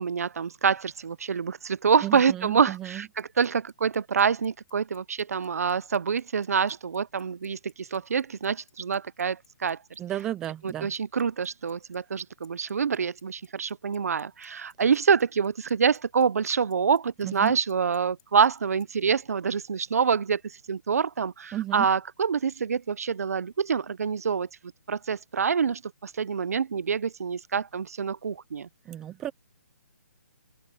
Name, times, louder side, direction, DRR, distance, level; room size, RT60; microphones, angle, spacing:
voice 1, 0.0-10.0 10.6-24.5 24.9-28.7, right 6 dB, 65° right, 0.5 m, -26 dB
voice 2, 2.0-3.0 10.0-10.9 17.2-17.5 21.5-21.9 28.9-29.3, right 12 dB, 5° right, 0.3 m, -33 dB
Bicycle, 2.9-18.9, left 12 dB, 30° left, 6.7 m, -61 dB
open air
hypercardioid pair, 175°, 9 cm